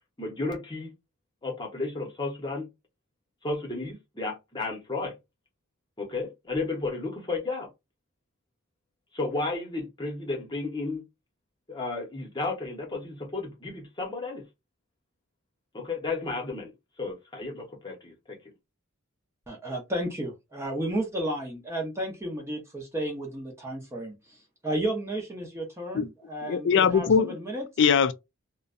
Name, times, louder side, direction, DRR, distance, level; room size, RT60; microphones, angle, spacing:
voice 1, 0.2-0.9 1.4-2.7 3.4-5.1 6.0-7.7 9.1-11.0 11.7-14.5 15.7-16.7 17.0-18.4, left 3 dB, 20° left, 0.8 m, -33 dB
voice 2, 19.5-24.2 24.6-27.7, right 1 dB, 10° right, 0.6 m, -32 dB
voice 3, 26.4-27.4 27.8-28.1, left 6 dB, 55° left, 0.4 m, -21 dB
2.5 x 2.1 x 2.4 m
head